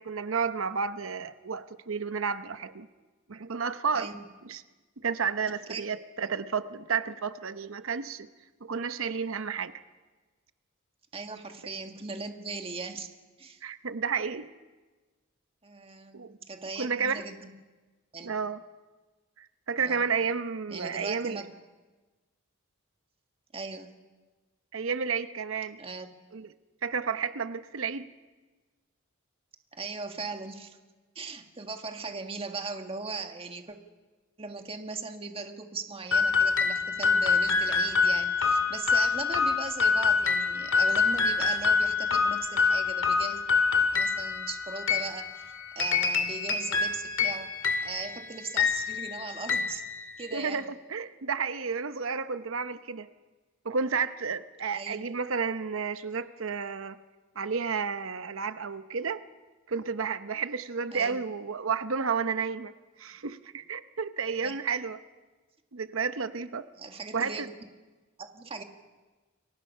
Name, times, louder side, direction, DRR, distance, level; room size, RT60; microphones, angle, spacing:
voice 1, 0.0-2.9 3.3-4.1 4.4-4.6 5.0-8.3 8.6-9.8 13.6-14.5 16.1-16.4 16.8-17.2 18.2-18.6 19.4-21.4 24.7-25.8 26.3-26.5 26.8-28.1 50.3-50.6 50.9-53.1 53.6-57.0 57.3-59.2 59.7-62.7 63.0-65.0 65.7-66.7 67.1-67.5, right 5 dB, 75° right, 11 dB, 0.8 m, -31 dB
voice 2, 3.9-4.3 5.7-5.8 11.1-13.1 13.4-13.6 15.6-17.5 18.1-18.3 19.8-20.0 20.7-21.5 23.5-23.9 25.8-26.1 29.7-30.8 31.1-33.8 34.4-43.4 43.9-47.5 47.8-49.8 50.2-50.6 54.7-55.0 60.9-61.2 64.4-64.6 66.8-67.7 68.2-68.6, right 4 dB, 30° right, 5 dB, 1.7 m, -39 dB
sound 1, 36.1-50.6, left 5 dB, 70° left, 2.2 m, -26 dB
29.5 x 23.0 x 5.6 m, 1.3 s
head